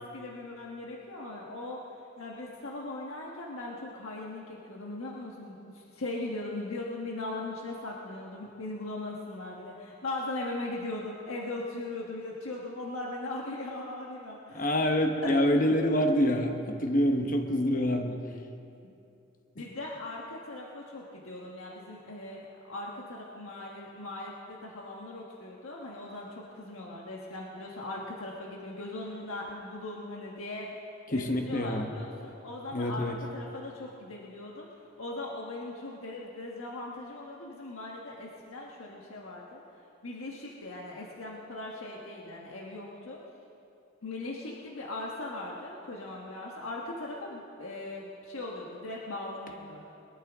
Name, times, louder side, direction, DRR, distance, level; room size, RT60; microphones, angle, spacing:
voice 1, 0.0-1.8 2.2-14.8 15.2-15.3 18.8-18.9 19.5-34.7 35.0-39.6 40.0-43.2 44.0-49.8, left 2 dB, 80° left, -2 dB, 1.4 m, -39 dB
voice 2, 14.5-18.2 19.6-19.7 31.1-31.9 32.7-33.1, equal, 40° left, 4 dB, 1.1 m, -26 dB
22.0 x 12.5 x 3.6 m, 2.7 s
head